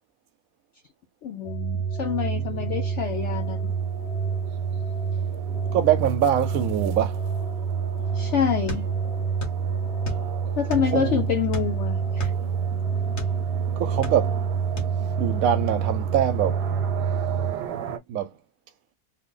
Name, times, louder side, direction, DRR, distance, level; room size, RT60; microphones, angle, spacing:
voice 1, 1.2-3.7 8.1-8.8 10.6-12.3, left 8 dB, 75° left, 0.6 m, -27 dB
sound 1, 1.4-17.5, right 6 dB, 30° left, 1.0 m, -27 dB
sound 2, 1.8-18.0, right 9 dB, 85° right, 1.2 m, -39 dB
voice 2, 2.4-2.7 5.7-7.3 10.8-11.2 13.8-14.4 14.7-14.9 15.2-16.6 18.1-18.3, right 10 dB, 70° right, 0.9 m, -24 dB
sound 3, 8.7-9.6 9.9-11.0 11.5-13.4 13.8-14.5 14.8-15.0, equal, 45° left, 1.5 m, -34 dB
3.2 x 2.1 x 3.7 m
omnidirectional pair, 1.7 m